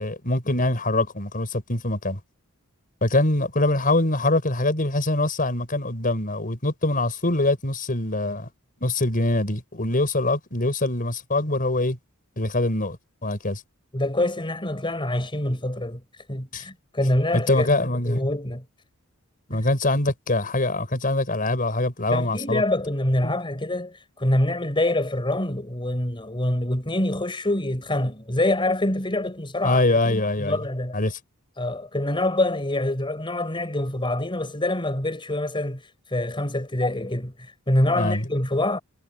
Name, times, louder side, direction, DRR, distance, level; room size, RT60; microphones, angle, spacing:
voice 1, 0.0-2.2 3.0-8.5 8.8-12.0 12.4-13.0 13.2-13.6 16.5-16.7 17.3-18.3 19.5-22.6 23.2-23.3 29.6-30.6 30.9-31.2 37.9-38.3, left 2 dB, 40° left, 5.6 m, -23 dB
voice 2, 13.9-16.0 16.3-18.6 19.5-19.6 22.1-31.0 31.6-35.8 36.1-38.8, left 1 dB, 25° left, 4.9 m, -25 dB
head